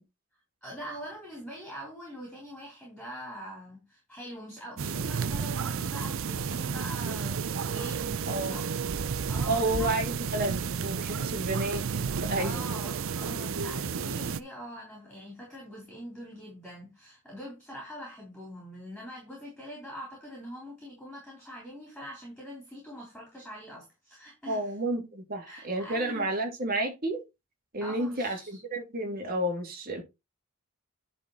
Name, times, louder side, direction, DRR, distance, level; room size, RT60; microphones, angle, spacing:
voice 1, 0.6-8.8 9.3-9.9 12.4-24.7 25.4-26.3 27.8-28.6, equal, 5° left, 3.9 m, -43 dB
sound 1, 4.8-14.4, right 6 dB, 60° right, 0.5 m, -32 dB
voice 2, 8.3-8.6 9.4-12.6 24.5-27.2 27.7-30.0, right 1 dB, 40° right, 2.6 m, -31 dB
10.5 x 4.4 x 4.1 m
head